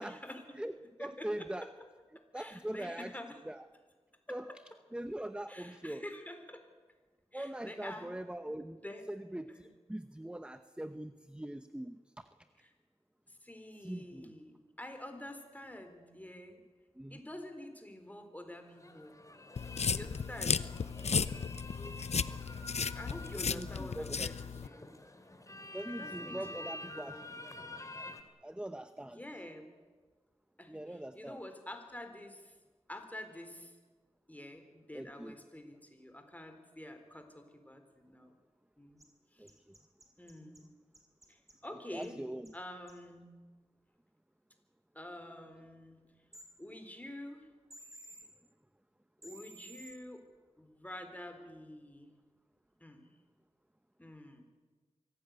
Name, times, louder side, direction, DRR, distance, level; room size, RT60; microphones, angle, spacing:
voice 1, 0.0-0.6 1.0-1.5 2.3-3.4 4.3-4.4 5.5-6.6 7.3-8.1 8.7-9.1 9.5-9.6 12.6-12.7 13.3-16.6 17.1-19.2 19.9-20.6 22.4-25.0 26.0-27.4 29.0-29.7 30.6-30.8 31.1-32.5 32.9-33.7 34.3-38.3 38.8-39.0 39.3-39.5 40.2-40.7 41.3-42.2 42.5-43.3 44.9-46.0 46.6-47.5 49.2-50.2 50.6-52.1 52.8-53.0 54.0-54.4, left 1 dB, 15° left, 6 dB, 4.0 m, -48 dB
voice 2, 0.6-1.7 2.3-3.1 3.4-3.6 4.3-4.5 4.9-6.0 7.3-8.8 9.1-12.3 13.8-14.3 17.0-17.2 23.4-24.3 25.7-27.3 28.4-29.2 30.7-31.4 34.9-35.4 39.4-39.7 41.9-42.5, right 1 dB, 10° right, 10 dB, 0.9 m, -42 dB
sound 1, 18.6-28.2, left 2 dB, 30° left, 2.7 m, -48 dB
sound 2, 19.6-24.7, left 5 dB, 75° left, 0.7 m, -35 dB
sound 3, 39.0-39.1 39.5-40.6 40.9-41.5 42.0-42.1 42.4-42.5 42.9-43.0 46.3-46.5 47.7-48.2 49.2-49.9, right 1 dB, 30° right, 5.1 m, -53 dB
24.0 x 16.5 x 9.5 m, 1.4 s
cardioid pair, 55°, 11 cm